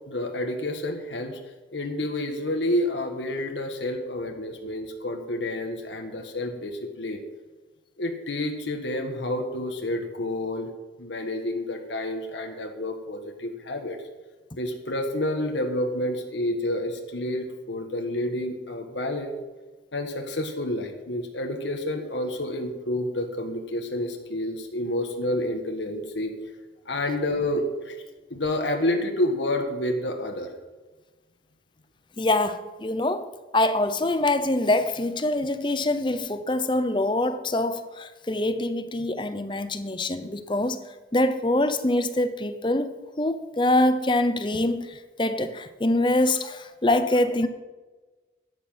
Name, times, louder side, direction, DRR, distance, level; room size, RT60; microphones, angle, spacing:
voice 1, 0.1-1.4 1.7-7.2 8.0-10.7 11.0-14.0 14.6-19.3 19.9-26.3 26.8-28.0 28.3-30.5, left 1 dB, 85° left, 1.5 m, -29 dB
voice 2, 32.2-33.3 33.5-40.8 41.1-47.5, left 1 dB, 25° left, 0.7 m, -24 dB
12.5 x 9.9 x 5.6 m
head